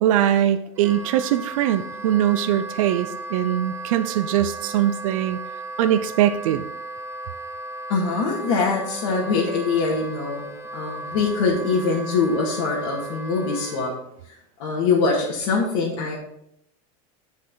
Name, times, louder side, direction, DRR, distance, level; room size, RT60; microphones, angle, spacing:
voice 1, 0.0-5.4 5.8-6.6, right 11 dB, 80° right, 9 dB, 0.6 m, -21 dB
Wind instrument woodwind instrument, 0.7-13.9, right 2 dB, 15° right, 0.7 m, -35 dB
voice 2, 7.9-13.9 14.3-16.2, left 4 dB, 65° left, -5 dB, 2.0 m, -23 dB
10.0 x 5.2 x 4.0 m, 0.75 s
supercardioid pair, 155°, 17 cm